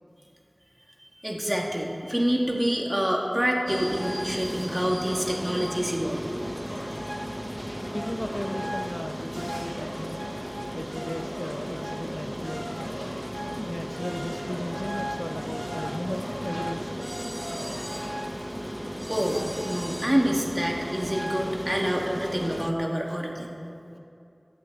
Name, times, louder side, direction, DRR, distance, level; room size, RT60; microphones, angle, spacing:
voice 1, 1.0-6.3 18.3-18.4 19.1-23.5, equal, 20° right, -1 dB, 2.3 m, -27 dB
sound 1, 3.7-22.7, equal, 5° right, 0.9 m, -34 dB
voice 2, 7.9-10.2 10.7-12.7 13.6-17.1, left 1 dB, 30° left, 4 dB, 0.7 m, -36 dB
16.0 x 14.5 x 4.1 m, 2.7 s
wide cardioid pair, 40°, 0 cm